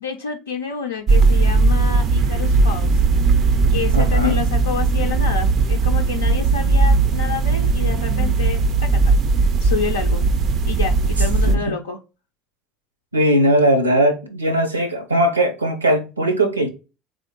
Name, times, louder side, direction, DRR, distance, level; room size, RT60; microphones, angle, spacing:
voice 1, 0.0-3.0 3.7-10.3 10.6-12.0, left 6 dB, 80° left, 0.5 m, -28 dB
sound 1, 1.1-11.6, right 3 dB, 45° right, 0.4 m, -18 dB
voice 2, 3.9-4.5 11.5-11.6 13.1-16.7, right 1 dB, 85° right, 0.7 m, -19 dB
3.6 x 3.4 x 3.7 m
figure-of-eight pair, 65°, 0 cm